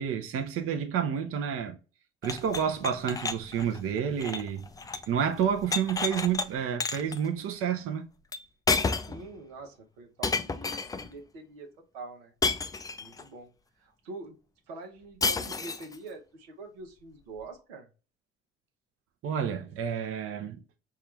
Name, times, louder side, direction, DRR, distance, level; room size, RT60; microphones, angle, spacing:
voice 1, 0.0-1.7 2.2-4.7 5.1-8.0 19.2-20.6, right 8 dB, 45° right, 0.8 m, -29 dB
sound 1, 2.2-5.1 5.4-6.5 6.8-7.2 8.3-8.4 8.7-9.2 10.2-11.1 12.4-13.2 15.2-16.0, left 4 dB, 10° left, 0.4 m, -31 dB
voice 2, 9.1-12.3 13.0-13.5 13.8-14.4 14.7-17.9, right 3 dB, 75° right, 1.0 m, -45 dB
5.5 x 2.4 x 3.1 m
figure-of-eight pair, 55°, 31 cm